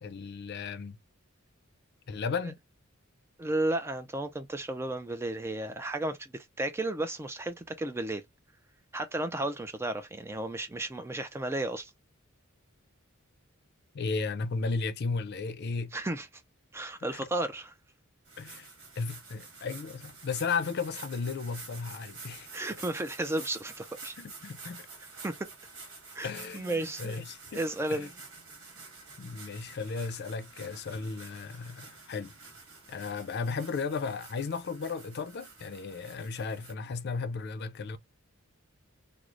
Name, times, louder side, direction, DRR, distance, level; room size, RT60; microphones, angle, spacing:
voice 1, 0.0-1.0 2.1-2.6 13.9-15.9 17.1-17.2 18.4-18.7 19.0-22.7 24.2-24.9 26.2-27.6 27.9-28.1 29.2-32.3 32.9-38.0, left 4 dB, 50° left, 0.4 m, -35 dB
voice 2, 3.4-6.3 6.6-8.2 8.9-11.9 15.9-16.3 16.7-17.7 22.5-24.2 25.2-25.3 26.1-26.3 26.5-27.2 27.6-28.1, right 1 dB, 10° right, 0.3 m, -33 dB
sound 1, 18.2-36.7, right 4 dB, 65° right, 1.5 m, -49 dB
3.0 x 2.0 x 3.7 m
head